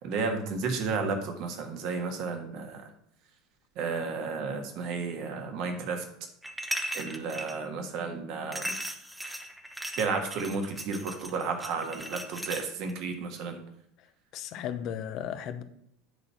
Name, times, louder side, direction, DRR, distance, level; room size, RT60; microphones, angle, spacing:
voice 1, 0.0-2.9 3.7-6.0 6.9-8.7 9.9-13.6, right 4 dB, 55° right, 4 dB, 1.6 m, -32 dB
sound 1, 6.4-7.6 8.5-12.9, right 1 dB, 5° right, 1.0 m, -37 dB
voice 2, 14.3-15.6, left 9 dB, 50° left, 10 dB, 0.7 m, -35 dB
8.9 x 4.1 x 6.1 m, 0.74 s
figure-of-eight pair, 75°, 0 cm